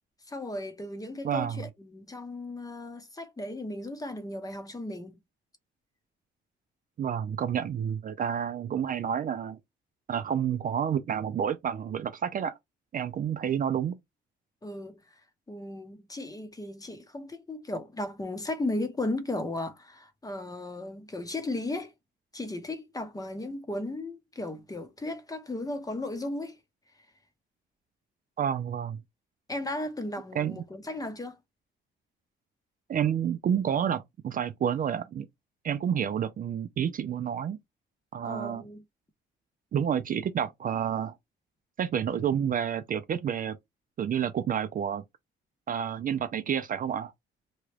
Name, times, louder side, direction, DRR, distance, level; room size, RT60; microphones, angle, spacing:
voice 1, 0.3-5.2 14.6-15.2 15.5-21.9 22.3-26.5 29.5-31.4 38.2-38.8, left 2 dB, 20° left, 0.8 m, -35 dB
voice 2, 1.2-1.7 7.0-9.6 10.1-12.6 12.9-14.0 28.4-29.0 30.3-30.6 32.9-35.3 35.6-37.6 38.1-38.6 39.7-41.1 41.8-43.6 44.0-45.0 45.7-47.1, right 8 dB, 45° right, 0.4 m, -29 dB
3.0 x 2.3 x 3.2 m
cardioid pair, 90°, 20 cm